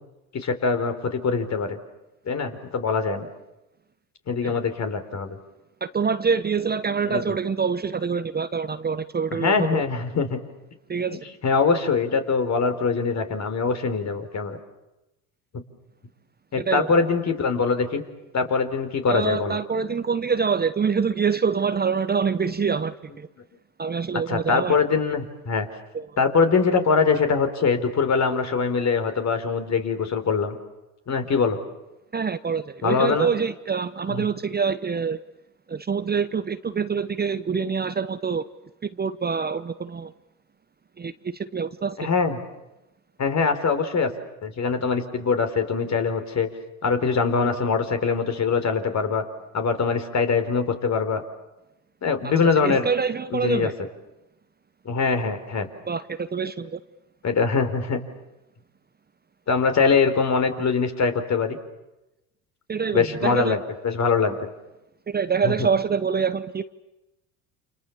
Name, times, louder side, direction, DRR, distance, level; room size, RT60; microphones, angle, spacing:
voice 1, 0.3-1.8 2.3-3.3 4.3-5.4 7.1-7.2 9.4-10.4 11.4-14.6 16.5-18.0 18.3-19.6 24.3-25.7 26.2-30.6 31.1-31.6 32.8-33.3 34.1-34.2 42.0-42.4 43.2-44.1 44.4-46.5 46.8-49.2 49.5-51.2 52.0-52.9 53.3-53.7 54.9-55.7 57.2-58.0 59.5-61.6 62.9-64.4 65.4-65.7, left 5 dB, 40° left, 7 dB, 4.1 m, -23 dB
voice 2, 5.8-9.8 10.9-11.2 16.6-16.9 19.1-23.3 23.8-24.8 25.9-26.2 32.1-35.2 35.7-38.4 38.8-40.1 41.0-42.0 52.6-53.7 55.9-56.8 62.7-63.6 65.1-66.6, right 6 dB, 25° right, 12 dB, 0.9 m, -25 dB
29.5 x 27.5 x 7.1 m, 0.96 s
supercardioid pair, 80°, 41 cm